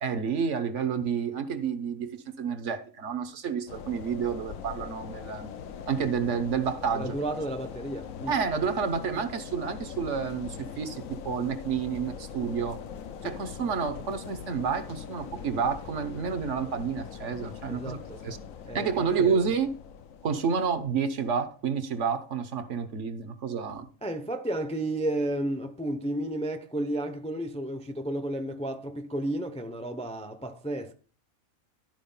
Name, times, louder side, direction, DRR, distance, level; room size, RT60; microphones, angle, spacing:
voice 1, 0.0-5.5 5.9-7.2 8.3-12.8 13.2-18.4 18.7-19.7 20.2-23.9, right 6 dB, 65° right, 1.3 m, -29 dB
sound 1, 3.7-21.6, left 7 dB, 75° left, 1.2 m, -42 dB
voice 2, 6.9-8.3 13.2-13.3 17.7-18.2 18.7-19.4 24.0-30.9, right 1 dB, 5° left, 0.5 m, -32 dB
12.5 x 4.8 x 5.5 m
omnidirectional pair, 1.4 m